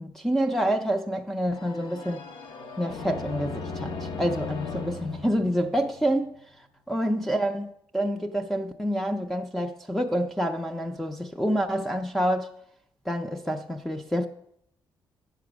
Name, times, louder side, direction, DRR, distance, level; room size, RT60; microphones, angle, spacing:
voice 1, 0.0-2.3 2.8-7.7 7.9-12.5 13.1-14.3, equal, 5° left, 0.4 m, -27 dB
sound 1, 1.5-6.3, left 4 dB, 70° left, 0.9 m, -37 dB
8.8 x 6.8 x 6.0 m
wide cardioid pair, 175°, 8 cm